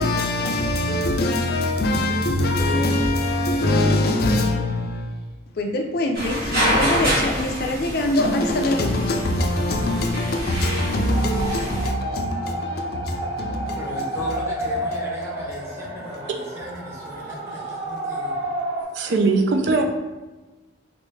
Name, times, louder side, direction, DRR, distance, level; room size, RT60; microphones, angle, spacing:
voice 1, 0.0-5.2 5.6-14.4 14.8-15.0, left 1 dB, 55° left, 0.4 m, -23 dB
sound 1, 6.1-11.9, equal, 50° right, 1.4 m, -26 dB
sound 2, 11.1-18.8, right 1 dB, 35° right, 1.2 m, -30 dB
voice 2, 13.6-18.4, equal, 15° right, 0.9 m, -37 dB
voice 3, 18.9-19.8, right 3 dB, 70° right, 0.4 m, -20 dB
3.4 x 2.5 x 3.2 m
head